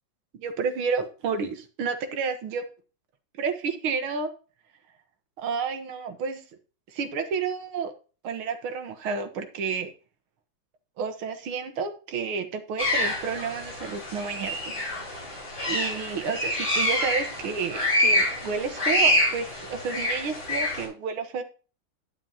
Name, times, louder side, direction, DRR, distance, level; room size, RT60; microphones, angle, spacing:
voice 1, 0.3-2.6 3.4-4.3 5.4-6.4 6.9-7.9 8.2-9.9 11.0-14.8 15.7-21.4, right 5 dB, 85° right, 7 dB, 2.1 m, -30 dB
sound 1, 12.8-20.9, left 1 dB, 65° left, 5.4 m, -26 dB
10.5 x 9.6 x 2.9 m, 0.36 s
omnidirectional pair, 2.2 m